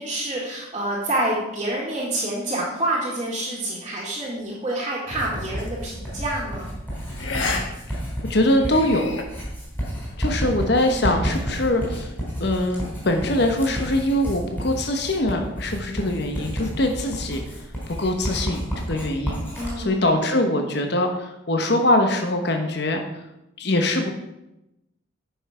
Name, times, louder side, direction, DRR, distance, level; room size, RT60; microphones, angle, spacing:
voice 1, 0.0-6.7 10.8-11.2 19.6-20.6, right 1 dB, 25° right, -7 dB, 1.8 m, -28 dB
Writing, 5.1-19.8, equal, 10° left, 3.6 m, -31 dB
sound 1, 5.6-5.8 7.2-7.6 8.0-8.1 8.6-9.2, left 3 dB, 80° left, 1.3 m, -29 dB
voice 2, 8.3-9.2 10.2-12.1 12.4-17.4 17.9-19.4 19.8-23.0 23.6-24.1, left 1 dB, 55° left, 4 dB, 1.0 m, -23 dB
10.0 x 5.8 x 4.9 m, 0.90 s
head